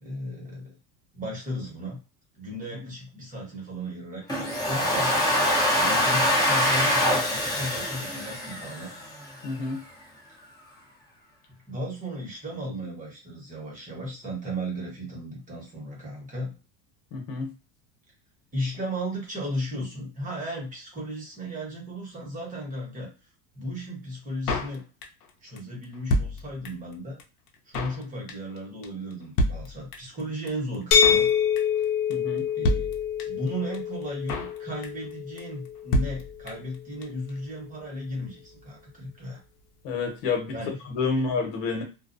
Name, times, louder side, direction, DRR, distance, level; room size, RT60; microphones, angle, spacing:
voice 1, 0.0-0.7 1.1-2.0 2.3-4.2 4.6-5.2 5.7-8.9 11.7-16.5 18.5-23.1 23.5-24.8 25.4-27.2 27.7-31.3 32.5-32.9 33.3-39.4 40.5-40.7 41.1-41.2, equal, 20° right, -3 dB, 1.0 m, -35 dB
Domestic sounds home sounds, 4.3-9.2, equal, 10° left, 0.9 m, -24 dB
voice 2, 9.4-9.8 17.1-17.5 32.1-32.5 39.8-41.8, left 4 dB, 70° left, 2 dB, 1.1 m, -29 dB
Drum kit, 24.5-25.3 25.6-25.7 25.8-26.9 27.2-27.3 27.5-28.0 28.3-28.6 28.8-28.9 29.1-29.2 29.4-30.2 30.5-30.6 30.7-31.3 31.6-31.8 32.1-32.2 32.4-32.5 32.6-33.5 33.7-33.8 34.0-34.6 34.8-35.1 35.4-35.5 35.7-35.8 35.9-36.8 37.0-37.1 37.3-37.4, left 1 dB, 90° left, 0.7 m, -28 dB
sound 1, 30.9-36.7, left 8 dB, 35° left, 0.4 m, -26 dB
2.3 x 2.2 x 2.6 m, 0.32 s
supercardioid pair, 130°, 43 cm